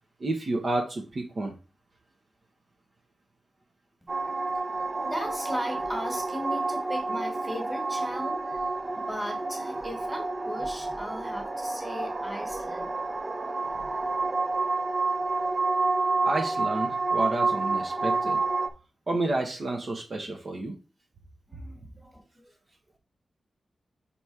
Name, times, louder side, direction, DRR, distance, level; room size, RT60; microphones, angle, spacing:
voice 1, 0.2-1.5 16.2-18.4 19.1-20.7, right 2 dB, 45° right, 1 dB, 1.0 m, -30 dB
voice 2, 4.0-4.3 4.9-8.6 8.9-12.9 13.8-13.9 21.5-22.5, equal, 5° right, 2 dB, 1.9 m, -37 dB
sound 1, 4.1-18.7, right 3 dB, 25° right, 0.6 m, -29 dB
5.7 x 4.1 x 4.7 m, 0.33 s
wide cardioid pair, 150°, 0 cm